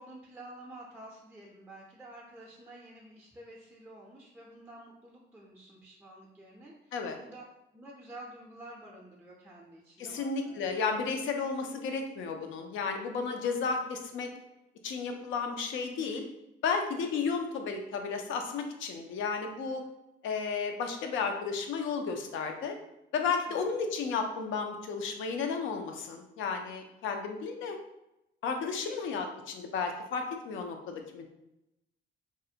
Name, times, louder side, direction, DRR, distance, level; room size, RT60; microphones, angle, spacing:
voice 1, 0.0-7.4 7.7-10.9 23.5-23.8 28.6-29.0, right 1 dB, 10° right, -3 dB, 0.4 m, -50 dB
voice 2, 10.0-14.3 14.8-16.2 16.6-19.8 20.2-22.8 23.1-27.8 28.4-31.3, left 5 dB, 80° left, 4 dB, 0.4 m, -33 dB
2.4 x 2.0 x 2.7 m, 0.89 s
cardioid pair, 90°, 20 cm